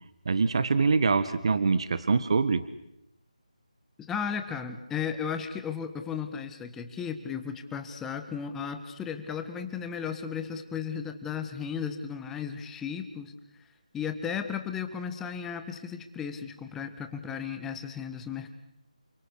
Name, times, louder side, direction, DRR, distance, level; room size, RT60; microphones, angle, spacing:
voice 1, 0.2-2.6, right 4 dB, 45° right, 13 dB, 1.4 m, -24 dB
voice 2, 4.1-13.3 13.9-18.5, left 7 dB, 5° left, 7 dB, 1.6 m, -35 dB
29.5 x 27.0 x 6.6 m, 0.82 s
figure-of-eight pair, 160°, 4 cm